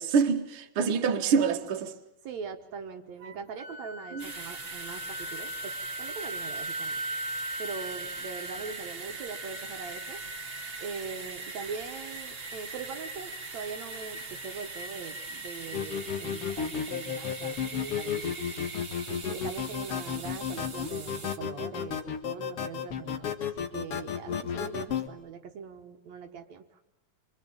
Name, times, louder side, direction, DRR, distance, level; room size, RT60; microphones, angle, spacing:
voice 1, 0.0-2.0 4.1-4.2, right 6 dB, 50° right, 2.2 m, -26 dB
voice 2, 2.2-7.0 7.6-10.2 10.8-18.3 19.1-23.4 23.7-26.8, right 5 dB, 70° right, 2.5 m, -41 dB
Wind instrument woodwind instrument, 3.2-11.0, equal, 85° right, 2.7 m, -39 dB
sound 1, 4.2-21.4, right 3 dB, 35° right, 1.0 m, -41 dB
sound 2, 15.7-25.1, left 8 dB, 55° left, 2.3 m, -33 dB
26.5 x 25.0 x 8.8 m
omnidirectional pair, 3.3 m